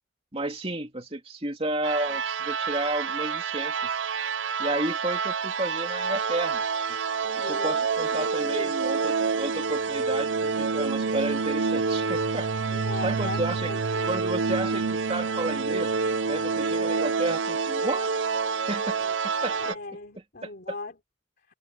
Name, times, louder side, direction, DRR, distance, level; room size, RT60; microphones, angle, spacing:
voice 1, 0.3-4.0 4.6-7.0 7.4-12.5 13.0-13.7 14.0-15.9 16.3-18.3 18.7-19.0 19.4-19.8 20.4-20.5, right 2 dB, 30° right, 2.9 m, -32 dB
sound 1, 1.8-19.7, right 5 dB, 65° right, 0.6 m, -28 dB
voice 2, 7.2-8.8 12.7-14.1 19.0-19.1 19.6-21.0, left 2 dB, 50° left, 3.3 m, -38 dB
head